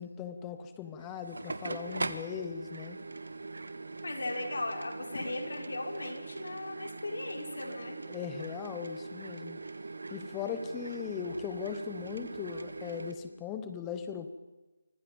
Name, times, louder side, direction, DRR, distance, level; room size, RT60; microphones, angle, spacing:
voice 1, 0.0-3.0 8.1-9.6 10.1-14.3, left 7 dB, 10° left, 8 dB, 0.9 m, -39 dB
sound 1, 1.0-13.1, right 3 dB, 85° right, 2.3 m, -41 dB
voice 2, 4.0-8.0, left 2 dB, 65° left, 2 dB, 5.3 m, -37 dB
30.0 x 25.0 x 5.4 m, 1.1 s
figure-of-eight pair, 180°, 0 cm